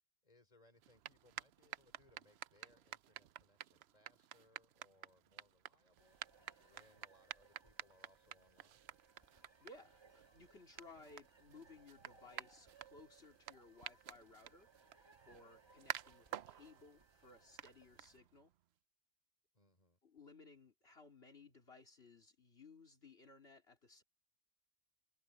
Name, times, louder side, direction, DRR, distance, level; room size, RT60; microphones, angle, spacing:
voice 1, 0.2-6.2 6.6-8.8 19.5-20.0, left 1 dB, 35° left, 4.1 m, -70 dB
sound 1, 0.8-18.6, right 11 dB, 70° right, 0.8 m, -52 dB
sound 2, 6.0-18.2, right 4 dB, 25° right, 1.3 m, -68 dB
voice 2, 9.4-14.7 15.3-18.5 20.0-24.0, left 3 dB, 60° left, 3.2 m, -60 dB
omnidirectional pair, 1.2 m